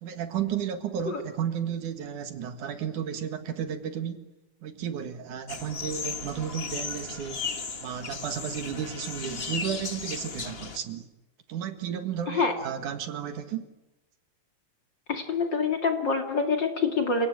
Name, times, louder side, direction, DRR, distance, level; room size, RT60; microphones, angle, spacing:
voice 1, 0.0-4.3 4.6-7.4 7.8-11.0 11.5-13.7, right 8 dB, 70° right, 8 dB, 3.1 m, -33 dB
sound 1, 5.5-10.8, left 5 dB, 75° left, 0.5 m, -36 dB
voice 2, 15.1-17.3, left 4 dB, 35° left, 4 dB, 2.6 m, -26 dB
28.5 x 17.5 x 8.9 m, 1.0 s
omnidirectional pair, 3.8 m